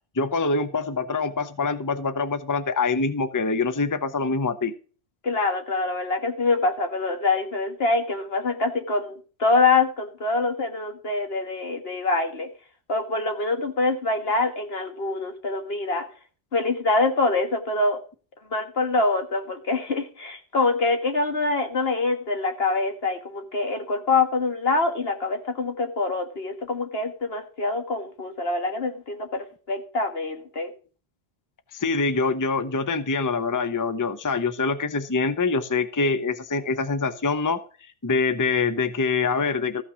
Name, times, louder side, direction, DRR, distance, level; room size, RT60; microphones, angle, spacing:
voice 1, 0.2-4.7 31.7-37.6 38.0-39.8, left 4 dB, 20° left, 12 dB, 0.7 m, -25 dB
voice 2, 5.2-12.5 12.9-16.0 16.5-18.0 18.5-30.7, left 3 dB, 70° left, 5 dB, 2.0 m, -25 dB
14.5 x 5.9 x 6.1 m, 0.38 s
omnidirectional pair, 1.0 m